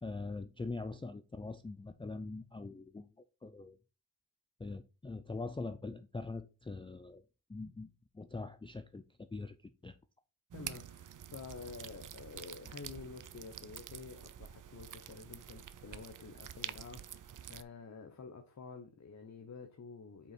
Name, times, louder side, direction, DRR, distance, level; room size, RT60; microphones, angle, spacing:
voice 1, 0.0-3.1 3.4-3.8 4.6-7.2 7.5-7.9 8.1-9.6 9.8-10.0, left 3 dB, 10° left, 0.4 m, -42 dB
voice 2, 10.5-20.3, left 5 dB, 35° left, 1.1 m, -49 dB
sound 1, 10.5-17.6, right 9 dB, 45° right, 0.6 m, -48 dB
5.4 x 4.6 x 4.3 m
cardioid pair, 60°, 46 cm